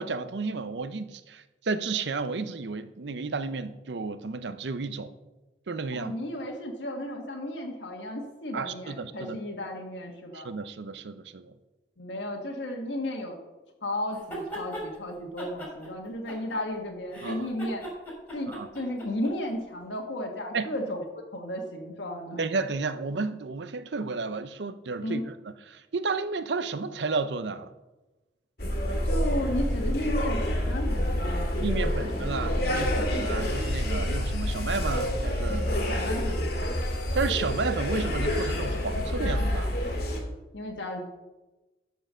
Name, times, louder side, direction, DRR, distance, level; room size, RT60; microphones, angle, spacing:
voice 1, 0.0-5.1 5.7-6.2 8.5-9.4 10.3-11.5 17.2-17.5 18.5-18.7 20.5-20.7 22.4-25.3 25.7-27.7 31.6-35.7 37.1-39.8, right 4 dB, 70° right, 0.6 m, -32 dB
voice 2, 5.9-10.5 12.0-13.4 13.8-17.9 18.3-21.0 21.3-22.4 25.0-25.3 29.0-32.3 35.7-36.8 40.5-41.1, left 1 dB, 80° left, 1.4 m, -34 dB
sound 1, 14.1-14.9 15.4-16.8 17.1-19.3, equal, 10° left, 3.2 m, -38 dB
sound 2, 28.6-40.2, left 1 dB, 55° left, 1.9 m, -28 dB
13.0 x 4.5 x 6.2 m
head